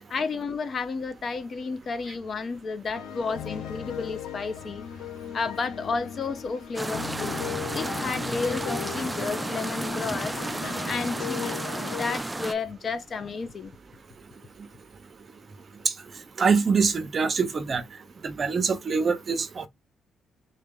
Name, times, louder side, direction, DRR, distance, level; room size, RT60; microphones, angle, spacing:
voice 1, 0.1-4.8 5.3-7.4 7.7-13.7, left 4 dB, 50° left, 0.7 m, -32 dB
sound 1, 2.9-12.2, left 9 dB, 90° left, 0.7 m, -37 dB
sound 2, 6.7-12.5, right 2 dB, 15° right, 0.3 m, -32 dB
voice 2, 16.4-17.8 18.2-19.7, right 5 dB, 40° right, 0.8 m, -24 dB
3.9 x 2.7 x 3.6 m
cardioid pair, 90°, 0 cm